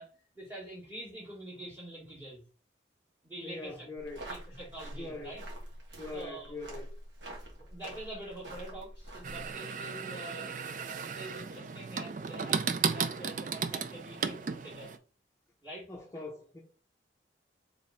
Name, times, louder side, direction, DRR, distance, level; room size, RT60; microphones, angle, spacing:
voice 1, 0.0-2.4 3.2-3.9 4.3-5.4 6.1-6.5 7.5-10.5 10.8-14.9 15.6-15.9, right 1 dB, 15° right, 1.9 m, -45 dB
voice 2, 3.4-4.3 5.0-5.4 6.0-6.9 15.9-16.6, left 2 dB, 15° left, 0.6 m, -42 dB
sound 1, 4.0-9.5, right 1 dB, 85° right, 1.7 m, -46 dB
sound 2, 9.2-15.0, right 6 dB, 45° right, 0.4 m, -35 dB
3.6 x 3.4 x 4.2 m
head